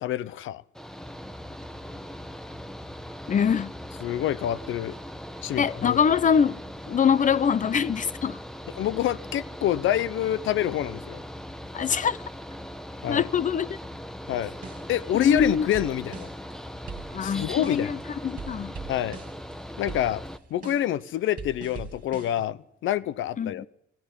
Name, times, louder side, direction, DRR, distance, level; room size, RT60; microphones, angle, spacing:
voice 1, 0.0-0.6 4.0-5.0 5.4-6.0 8.8-11.2 13.0-13.2 14.3-14.5 14.9-16.3 17.2-18.0 18.9-19.2 19.8-20.2 20.5-23.6, left 11 dB, 80° left, 0.8 m, -27 dB
Mechanical fan, 0.7-20.4, equal, 5° left, 1.1 m, -40 dB
voice 2, 3.3-3.7 5.6-6.6 6.9-8.4 11.7-12.2 13.1-13.7 15.1-15.7 17.1-18.8 23.4-23.7, left 7 dB, 40° left, 0.7 m, -24 dB
sound 1, 14.6-16.5 16.9-18.0 18.3-19.5 19.9-22.5, right 5 dB, 40° right, 2.8 m, -41 dB
17.0 x 16.0 x 9.9 m
cardioid pair, 90°, 20 cm